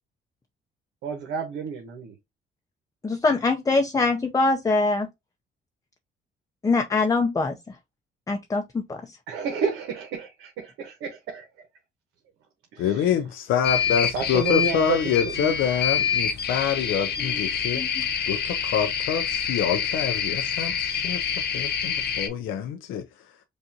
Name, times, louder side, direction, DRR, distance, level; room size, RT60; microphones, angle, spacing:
voice 1, 1.0-2.1 9.3-11.5 12.7-13.1 14.1-15.5, right 5 dB, 90° right, 1.0 m, -30 dB
voice 2, 3.0-5.1 6.6-7.8 8.3-9.2 17.2-17.4 17.7-18.1, left 3 dB, 15° left, 0.5 m, -24 dB
voice 3, 12.8-17.8 18.3-23.3, left 8 dB, 85° left, 0.5 m, -26 dB
sound 1, 13.6-22.3, left 7 dB, 55° left, 0.9 m, -26 dB
5.2 x 2.5 x 2.7 m
cardioid pair, 90°, 20 cm